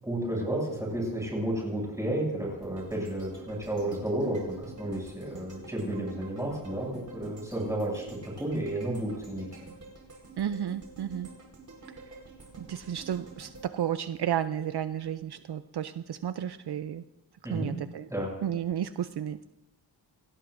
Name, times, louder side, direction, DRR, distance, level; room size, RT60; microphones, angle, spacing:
voice 1, 0.0-9.6 17.4-17.8 18.1-18.3, right 1 dB, 5° right, -3 dB, 7.0 m, -32 dB
sound 1, 2.6-14.8 15.2-15.3, right 3 dB, 45° right, 4.6 m, -49 dB
voice 2, 10.4-11.3 11.9-12.0 12.6-17.0 17.5-18.1 18.4-19.4, right 10 dB, 65° right, 11 dB, 0.5 m, -32 dB
28.5 x 17.0 x 2.6 m, 0.98 s
wide cardioid pair, 170°, 43 cm